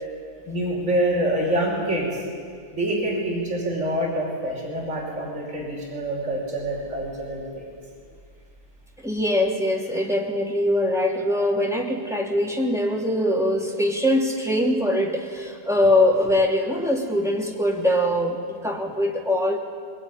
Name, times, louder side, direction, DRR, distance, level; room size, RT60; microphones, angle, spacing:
voice 1, 0.5-2.2 2.7-7.6, right 1 dB, 35° right, -3 dB, 5.9 m, -26 dB
voice 2, 9.0-19.6, left 1 dB, ahead, -1 dB, 2.7 m, -22 dB
22.0 x 21.5 x 10.0 m, 2.1 s
omnidirectional pair, 2.3 m